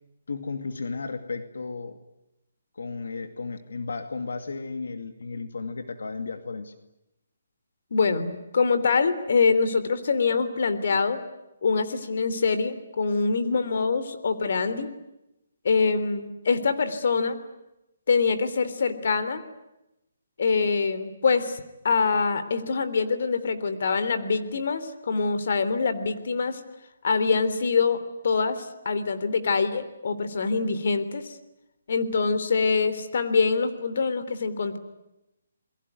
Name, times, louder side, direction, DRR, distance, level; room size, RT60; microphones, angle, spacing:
voice 1, 0.3-2.0 2.7-6.7, left 4 dB, 85° left, 9 dB, 2.4 m, -34 dB
voice 2, 7.9-11.2 11.6-14.9 15.7-17.4 18.1-19.4 20.4-26.6 27.0-28.0 28.2-31.3 31.9-34.8, left 4 dB, 55° left, 11 dB, 3.3 m, -24 dB
29.0 x 22.0 x 9.4 m, 0.91 s
hypercardioid pair, 170°, 0 cm